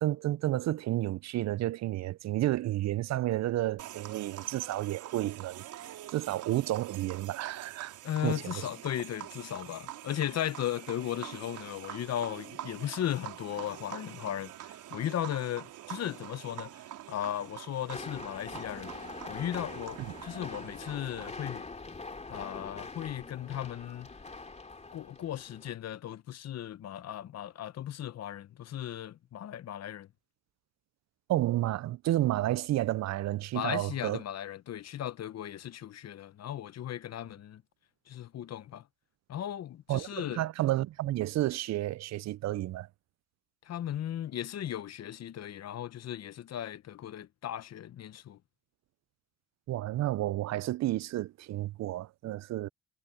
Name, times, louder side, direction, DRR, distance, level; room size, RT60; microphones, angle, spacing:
voice 1, 0.0-7.9 8.2-8.7 20.0-20.1 31.3-34.2 39.9-42.9 49.7-52.7, right 15 dB, 60° right, 0.5 m, -31 dB
sound 1, 3.8-21.3, right 12 dB, 85° right, 4.9 m, -45 dB
voice 2, 8.0-18.9 19.3-21.7 22.3-24.1 24.9-30.1 33.5-37.6 38.1-38.8 39.3-40.4 43.7-48.4, left 11 dB, 55° left, 0.9 m, -36 dB
sound 2, 17.9-25.7, left 3 dB, 20° left, 3.2 m, -44 dB
cardioid pair, 90°, 30 cm